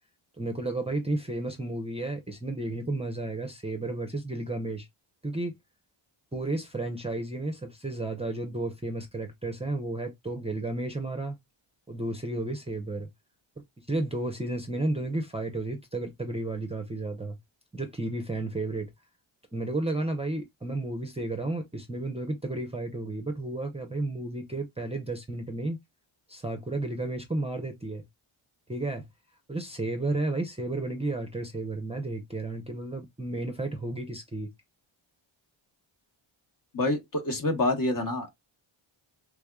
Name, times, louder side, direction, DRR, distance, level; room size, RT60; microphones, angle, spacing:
voice 1, 0.4-4.9 5.2-5.5 6.3-11.4 11.9-13.1 13.9-17.4 17.7-18.9 19.5-25.8 26.3-28.0 28.7-29.0 29.5-34.5, right 2 dB, 15° right, 0.6 m, -32 dB
voice 2, 36.7-38.3, left 2 dB, 40° left, 1.1 m, -27 dB
3.5 x 3.4 x 2.2 m
wide cardioid pair, 100°, 50 cm